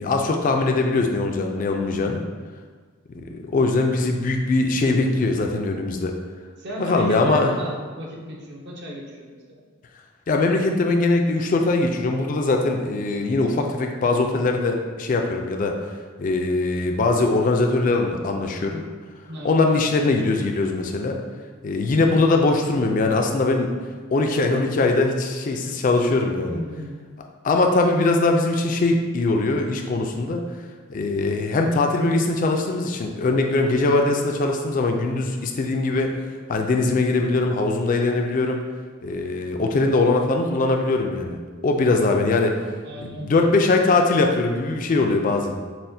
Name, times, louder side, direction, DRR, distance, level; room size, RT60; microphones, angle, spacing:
voice 1, 0.0-2.2 3.1-6.2 6.8-7.5 10.3-15.8 16.2-18.9 19.4-21.2 21.6-23.7 24.1-26.6 27.4-30.4 30.9-36.2 36.5-38.6 39.0-42.6 43.0-45.6, left 3 dB, 40° left, 3 dB, 0.3 m, -21 dB
voice 2, 6.6-9.6 19.3-19.6 26.5-27.1 42.9-43.5, equal, 55° right, -2 dB, 0.6 m, -35 dB
6.0 x 2.1 x 2.6 m, 1.5 s
head